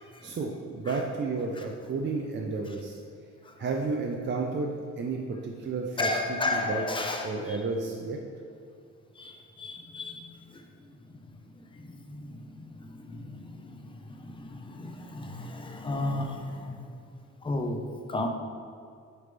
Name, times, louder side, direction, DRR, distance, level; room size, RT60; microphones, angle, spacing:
voice 1, 0.2-3.0 3.6-6.1 6.5-6.8 7.2-8.2, right 3 dB, 40° right, 1 dB, 0.4 m, -32 dB
voice 2, 6.0-7.6 9.2-10.7 11.1-16.8 17.4-17.8 18.1-18.3, left 2 dB, 15° left, 3 dB, 0.5 m, -34 dB
8.8 x 3.4 x 3.3 m, 2.3 s
wide cardioid pair, 145°, 30 cm